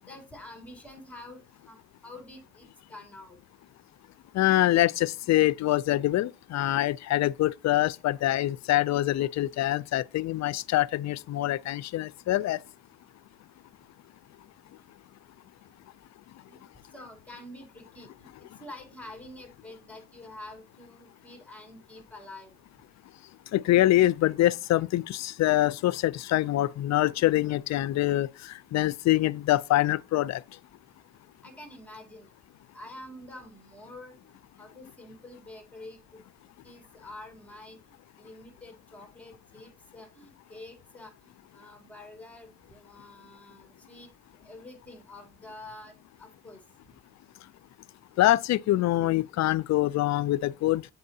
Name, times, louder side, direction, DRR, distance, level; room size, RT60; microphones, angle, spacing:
voice 1, 0.0-3.4 16.5-18.3 18.6-22.5 31.4-32.3 32.7-36.2 36.6-37.8 38.2-44.1 44.4-46.6, left 1 dB, 5° left, 2.2 m, -47 dB
voice 2, 4.3-12.6 23.5-30.4 48.2-50.8, left 15 dB, 65° left, 0.4 m, -25 dB
7.6 x 5.3 x 2.7 m
cardioid pair, 90°, 30 cm